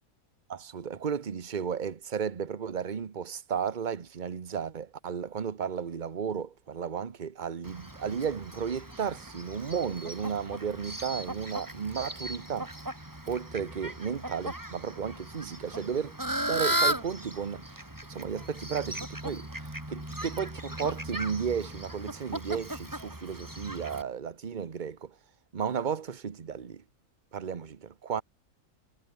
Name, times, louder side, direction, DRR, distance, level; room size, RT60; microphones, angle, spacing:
voice 1, 0.5-12.7 13.3-16.2 16.5-17.6 18.1-25.1 25.5-26.8 27.3-28.2, right 7 dB, 35° right, 1.1 m, -34 dB
Fowl, 7.6-24.0, right 1 dB, 10° right, 3.1 m, -36 dB
omnidirectional pair, 1.6 m